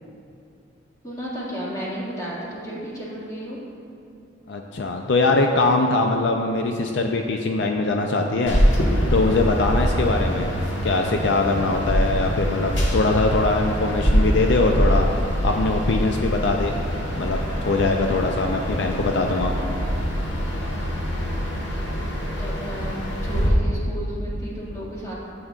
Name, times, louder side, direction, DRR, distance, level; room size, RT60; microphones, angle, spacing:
voice 1, 1.0-3.6 21.7-21.9 22.4-25.1, equal, 20° left, -7 dB, 2.0 m, -33 dB
voice 2, 4.5-8.6 9.1-10.5 10.8-15.1 15.4-16.8 17.2-17.4 17.7-19.5, left 3 dB, 65° left, 3 dB, 0.4 m, -22 dB
Night city reverb, 8.5-23.5, equal, 85° left, 1.4 m, -24 dB
12.0 x 7.7 x 2.4 m, 2.5 s
head